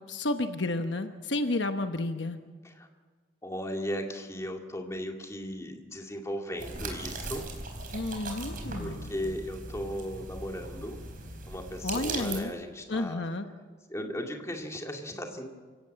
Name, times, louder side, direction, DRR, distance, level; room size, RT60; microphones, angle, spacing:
voice 1, 0.0-2.4 7.9-9.1 11.8-12.5 12.9-13.5, left 2 dB, 65° left, 7 dB, 1.1 m, -31 dB
voice 2, 3.4-7.5 8.8-11.0 11.5-13.3 13.9-15.5, equal, 15° left, 2 dB, 2.3 m, -36 dB
sound 1, 6.6-12.4, right 3 dB, 45° right, 4.4 m, -39 dB
28.0 x 17.0 x 7.6 m, 1.5 s
head